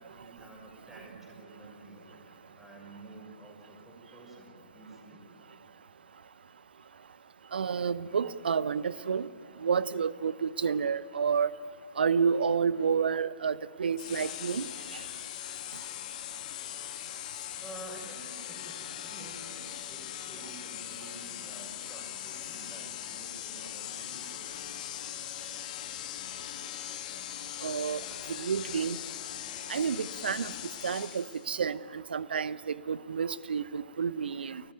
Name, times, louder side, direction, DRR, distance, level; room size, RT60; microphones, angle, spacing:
voice 1, 0.1-5.2 17.6-24.7, right 2 dB, 5° right, -1 dB, 6.5 m, -50 dB
voice 2, 7.5-9.3 9.6-11.5 12.0-14.7 14.9-15.0 27.6-28.0 28.3-29.0 29.7-30.5 30.8-34.6, right 6 dB, 65° right, 19 dB, 0.7 m, -30 dB
sound 1, 14.0-31.5, left 12 dB, 40° left, 1.8 m, -40 dB
30.0 x 14.5 x 9.2 m, 2.4 s
figure-of-eight pair, 120°, 6 cm